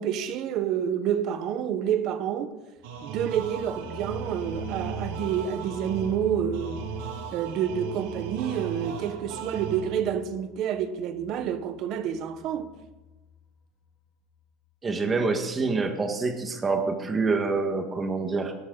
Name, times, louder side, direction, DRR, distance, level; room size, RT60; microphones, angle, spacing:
voice 1, 0.0-2.6 3.0-6.9 7.3-12.7, right 9 dB, 45° right, 1.2 m, -28 dB
sound 1, 2.8-13.5 13.8-13.9 14.2-14.3, left 8 dB, 50° left, 3.7 m, -45 dB
sound 2, 2.8-10.2, right 9 dB, 90° right, 2.2 m, -37 dB
voice 2, 14.8-18.5, right 4 dB, 20° right, 1.7 m, -26 dB
18.5 x 12.5 x 4.0 m
cardioid pair, 155°, 0 cm